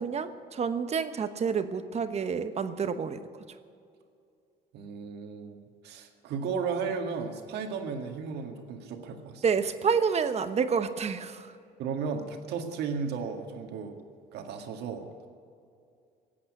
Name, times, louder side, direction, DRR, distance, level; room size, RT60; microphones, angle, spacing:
voice 1, 0.0-3.2 9.4-11.5, right 6 dB, 40° right, 9 dB, 1.1 m, -28 dB
voice 2, 4.7-5.6 5.8-9.5 11.8-14.0 14.3-15.1, right 5 dB, 75° right, 4 dB, 1.9 m, -34 dB
17.5 x 8.6 x 8.6 m, 2.4 s
cardioid pair, 110°, 17 cm